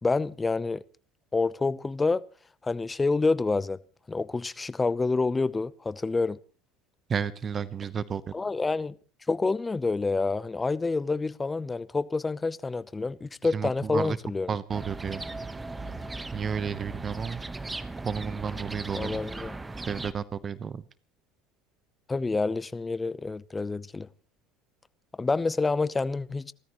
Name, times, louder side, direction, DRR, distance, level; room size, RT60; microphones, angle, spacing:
voice 1, 0.0-0.8 1.3-2.2 2.6-3.8 4.1-6.4 8.3-8.9 9.3-14.5 18.9-19.6 22.1-24.1 25.2-26.5, left 3 dB, 20° left, 0.8 m, -28 dB
voice 2, 7.1-8.2 13.5-14.2 14.5-15.2 16.3-17.4 18.0-19.2 19.9-20.8, right 6 dB, 35° right, 0.9 m, -32 dB
sound 1, 14.7-20.1, right 2 dB, 15° right, 1.2 m, -38 dB
29.0 x 13.5 x 3.1 m
hypercardioid pair, 75°, 0 cm